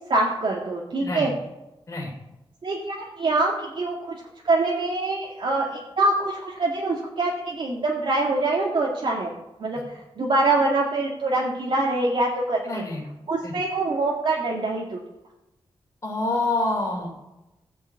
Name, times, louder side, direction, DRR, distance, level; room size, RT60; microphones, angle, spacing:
voice 1, 0.1-1.3 2.6-4.2 4.4-9.3 9.6-9.8 10.2-12.8 13.3-15.0, right 2 dB, 55° right, -2 dB, 2.0 m, -24 dB
voice 2, 1.0-1.3 1.9-2.1 12.6-13.0 13.4-13.5 16.0-17.3, left 2 dB, 30° left, -3 dB, 3.0 m, -27 dB
16.0 x 6.2 x 8.3 m, 0.98 s
wide cardioid pair, 145°, 10 cm